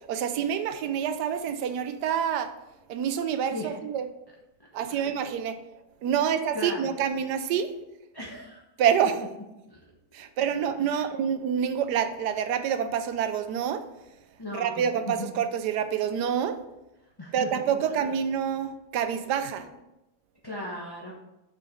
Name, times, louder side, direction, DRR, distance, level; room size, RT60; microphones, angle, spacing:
voice 1, 0.1-2.5 2.9-4.1 4.7-5.6 6.0-7.7 8.8-9.2 10.1-13.8 14.5-16.6 17.3-19.7, right 8 dB, 85° right, 9 dB, 1.3 m, -27 dB
voice 2, 6.2-6.9 8.1-8.6 9.7-9.9 10.9-11.0 14.4-15.3 17.2-17.9 20.4-21.1, left 1 dB, 20° left, -3 dB, 0.8 m, -38 dB
6.6 x 5.2 x 5.1 m, 0.95 s
omnidirectional pair, 1.7 m